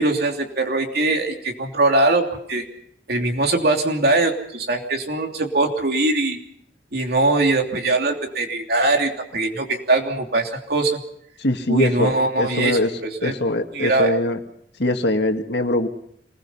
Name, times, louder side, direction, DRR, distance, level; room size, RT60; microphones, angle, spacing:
voice 1, 0.0-2.6 3.1-6.4 6.9-11.0 11.7-13.4 13.7-14.1, right 2 dB, 60° right, 3 dB, 3.1 m, -21 dB
voice 2, 11.4-12.1 12.4-12.9 13.2-14.4 14.8-15.9, left 1 dB, 70° left, 5 dB, 2.0 m, -22 dB
27.0 x 20.5 x 5.6 m, 0.69 s
head